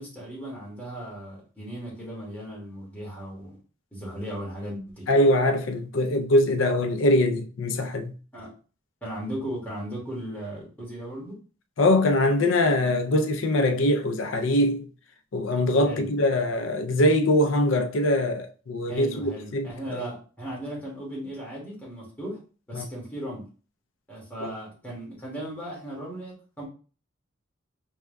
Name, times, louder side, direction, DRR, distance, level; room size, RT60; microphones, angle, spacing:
voice 1, 0.0-3.6 3.9-5.1 8.3-8.5 9.0-11.4 15.8-16.1 18.9-22.4 22.7-23.4 24.1-26.6, right 1 dB, 10° left, 1.9 m, -36 dB
voice 2, 5.1-8.1 11.8-14.9 15.3-19.7 22.7-22.9 24.4-24.5, left 1 dB, 75° left, 0.5 m, -22 dB
4.5 x 3.5 x 2.2 m
head